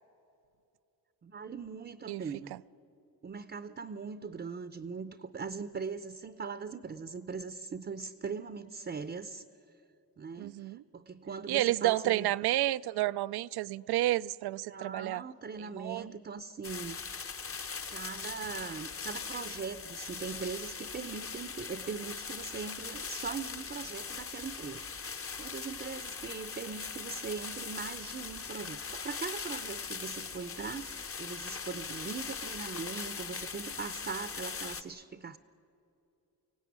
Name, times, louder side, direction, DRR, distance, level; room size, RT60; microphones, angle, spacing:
voice 1, 1.2-2.5 3.2-9.4 10.2-12.3 14.7-17.0 17.9-35.4, right 5 dB, 30° right, 0.6 m, -40 dB
voice 2, 10.4-10.8 11.5-15.2 15.6-16.1, right 15 dB, 85° right, 0.5 m, -30 dB
sound 1, 16.6-34.8, left 5 dB, 35° left, 1.0 m, -40 dB
24.0 x 17.0 x 9.5 m
cardioid pair, 95°, 37 cm